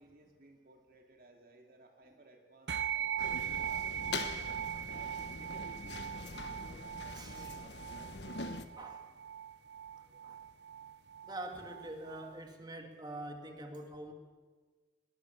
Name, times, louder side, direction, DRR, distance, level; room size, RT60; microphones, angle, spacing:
voice 1, 0.0-4.2 4.9-8.4, right 2 dB, 55° right, 2 dB, 2.3 m, -59 dB
sound 1, 2.7-12.4, right 9 dB, 75° right, 0.6 m, -40 dB
sound 2, 3.2-8.7, left 3 dB, 80° left, 1.3 m, -43 dB
voice 2, 7.1-7.5 8.8-9.1 10.0-10.4 11.2-14.1, right 1 dB, 25° right, 4 dB, 2.6 m, -45 dB
21.5 x 20.0 x 7.3 m, 1.4 s
head